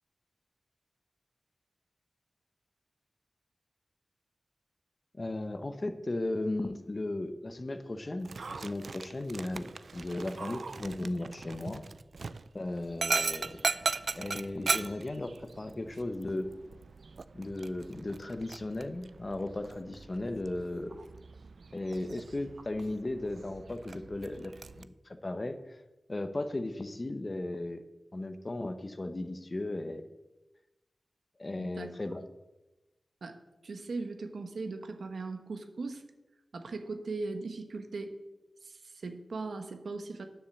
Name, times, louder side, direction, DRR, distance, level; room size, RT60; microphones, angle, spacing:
voice 1, 5.1-11.8 12.5-13.6 14.1-16.5 17.3-21.1 21.7-25.8 26.1-27.8 28.1-30.1 31.4-32.2, left 2 dB, 35° left, 9 dB, 0.9 m, -36 dB
Dog, 8.2-24.8, right 4 dB, 75° right, 0.4 m, -38 dB
voice 2, 31.6-31.9 33.2-36.0 36.5-38.2 38.6-40.2, right 3 dB, 90° right, 7 dB, 1.1 m, -39 dB
9.5 x 7.3 x 7.1 m, 1.0 s
wide cardioid pair, 100°, 0 cm